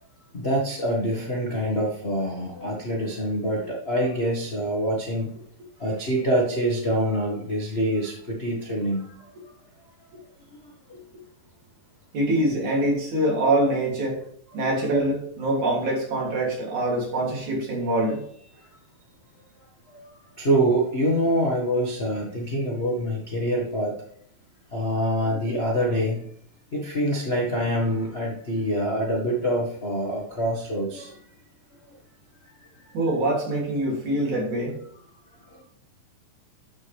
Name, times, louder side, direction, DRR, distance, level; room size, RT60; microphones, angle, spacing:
voice 1, 0.3-5.3 5.8-9.3 10.5-10.6 19.9-20.1 20.4-24.0 24.7-26.3 26.7-31.2 32.6-32.9 35.4-35.6, equal, 70° left, -3 dB, 0.5 m, -25 dB
voice 2, 12.1-14.2 14.5-18.2 32.9-34.8, right 1 dB, 55° right, -3 dB, 4.3 m, -24 dB
12.0 x 6.6 x 3.5 m, 0.64 s
omnidirectional pair, 4.2 m